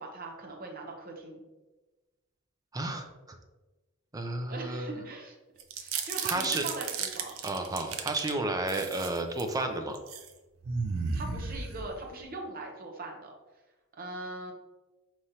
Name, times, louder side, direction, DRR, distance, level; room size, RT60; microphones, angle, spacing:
voice 1, 0.0-1.4 4.5-5.4 5.7-7.7 11.1-13.3 14.0-14.5, right 2 dB, 45° right, 1 dB, 0.8 m, -40 dB
voice 2, 2.7-3.4 4.1-4.9 6.2-6.7 7.4-10.0, right 2 dB, 20° right, 5 dB, 0.4 m, -32 dB
sound 1, 5.6-8.3 8.7-9.5 10.0-10.3 10.6-12.3, right 5 dB, 75° right, 0.5 m, -34 dB
5.1 x 3.1 x 2.8 m, 1.1 s
head